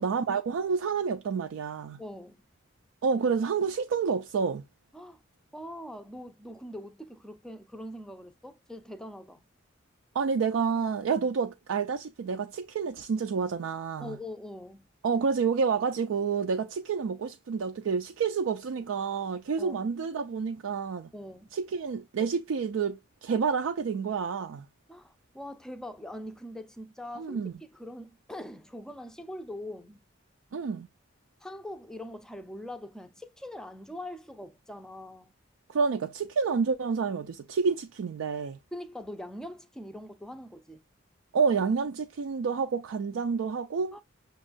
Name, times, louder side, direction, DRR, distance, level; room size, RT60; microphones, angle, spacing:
voice 1, 0.0-2.0 3.0-4.6 10.1-14.2 15.0-21.1 21.5-24.7 27.2-27.5 30.5-30.9 35.7-38.6 41.3-44.0, right 5 dB, 85° right, 0.4 m, -29 dB
voice 2, 2.0-2.4 4.9-5.2 5.5-9.4 14.0-14.9 19.6-19.8 21.1-21.5 24.9-27.4 27.7-30.0 31.4-35.3 38.7-40.8 43.9-44.0, left 1 dB, 5° left, 0.4 m, -42 dB
6.2 x 2.3 x 2.4 m
head